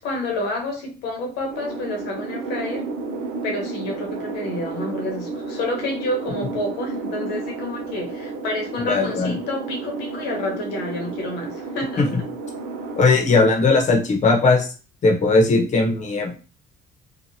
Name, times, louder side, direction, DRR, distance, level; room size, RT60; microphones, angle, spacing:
voice 1, 0.0-2.9 3.4-12.1, left 1 dB, 85° left, 1 dB, 1.2 m, -29 dB
sound 1, 1.5-13.1, right 3 dB, 85° right, 0.6 m, -32 dB
voice 2, 8.9-9.3 13.0-14.7 15.0-16.4, left 3 dB, 45° left, 1 dB, 0.9 m, -18 dB
2.9 x 2.4 x 2.6 m, 0.35 s
cardioid pair, 110°, 17 cm